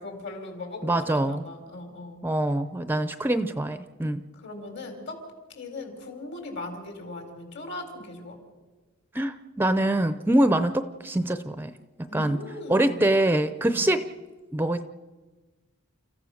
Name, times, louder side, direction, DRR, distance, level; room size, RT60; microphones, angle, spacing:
voice 1, 0.0-2.2 4.4-5.2 5.6-8.4 12.1-13.0 13.6-13.9, left 2 dB, 55° left, 4 dB, 4.4 m, -39 dB
voice 2, 0.8-1.4 2.2-4.2 9.1-11.7 12.1-12.4 12.7-14.0 14.5-14.8, right 1 dB, 10° right, 10 dB, 0.6 m, -24 dB
30.0 x 15.0 x 6.5 m, 1.3 s
head